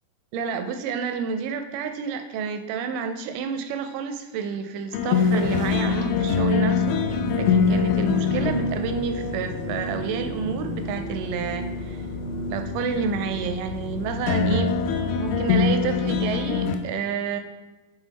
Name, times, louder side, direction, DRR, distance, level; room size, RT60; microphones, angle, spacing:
voice 1, 0.3-12.1 12.5-14.8 15.2-17.4, right 6 dB, 80° right, 7 dB, 1.9 m, -29 dB
sound 1, 4.9-16.7, left 5 dB, 90° left, 2.3 m, -25 dB
sound 2, 5.9-15.8, left 2 dB, 70° left, 2.1 m, -33 dB
8.1 x 3.7 x 4.0 m, 1.2 s
omnidirectional pair, 4.1 m